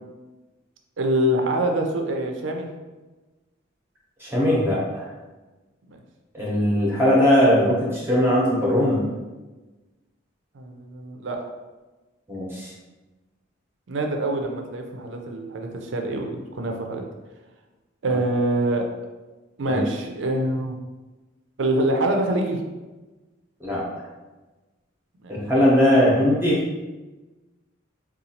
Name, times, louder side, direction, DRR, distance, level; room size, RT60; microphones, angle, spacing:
voice 1, 1.0-2.7 5.9-6.0 10.5-11.4 13.9-17.1 18.0-18.9 19.6-20.8 21.6-22.6 25.2-25.3 26.0-26.2, right 1 dB, 65° right, 3 dB, 0.5 m, -25 dB
voice 2, 4.2-5.1 6.3-9.0 12.3-12.7 18.1-18.2 19.7-19.8 23.6-23.8 25.3-26.6, equal, 10° right, -6 dB, 0.7 m, -20 dB
4.0 x 2.3 x 2.7 m, 1.2 s
head